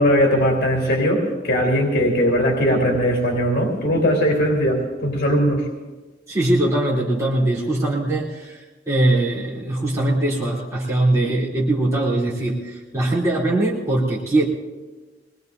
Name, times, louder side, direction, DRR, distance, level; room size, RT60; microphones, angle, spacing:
voice 1, 0.0-5.7, equal, 55° left, -2 dB, 3.4 m, -19 dB
voice 2, 6.3-14.4, right 1 dB, 15° right, -9 dB, 3.3 m, -21 dB
24.5 x 21.0 x 2.7 m, 1.3 s
head